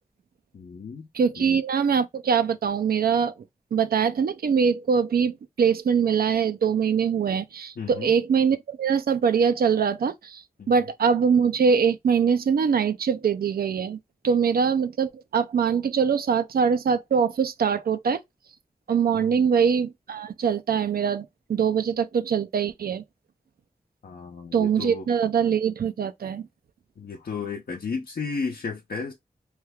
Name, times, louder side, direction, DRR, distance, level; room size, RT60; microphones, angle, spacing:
voice 1, 0.5-1.1 1.4-1.5 7.8-8.1 10.6-10.7 19.1-19.4 24.0-25.1 27.0-29.1, left 4 dB, 80° left, 0.7 m, -33 dB
voice 2, 1.1-3.3 3.7-14.0 14.2-18.2 18.9-23.0 24.5-26.4, right 6 dB, 85° right, 0.4 m, -23 dB
3.2 x 2.3 x 3.3 m
cardioid pair, 45°, 15 cm